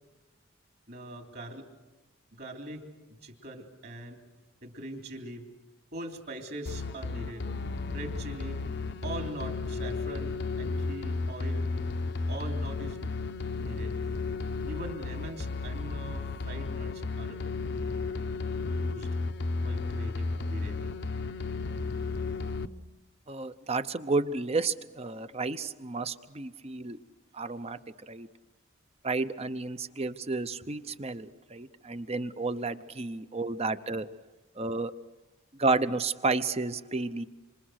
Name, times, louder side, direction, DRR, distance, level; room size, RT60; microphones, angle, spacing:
voice 1, 0.9-1.7 2.3-4.2 4.6-5.4 5.9-7.5 7.9-8.6 9.0-11.7 12.3-13.1 13.6-14.0 14.7-17.4 18.8-19.1 19.6-20.9, right 1 dB, 50° right, 3 dB, 3.5 m, -42 dB
sound 1, 6.7-22.7, left 3 dB, 55° left, 0.8 m, -33 dB
voice 2, 23.3-27.0 27.3-27.8 28.1-28.3 29.0-34.1 34.6-34.9 35.5-37.2, right 3 dB, 30° right, 13 dB, 0.8 m, -31 dB
27.0 x 26.5 x 6.5 m, 1.1 s
head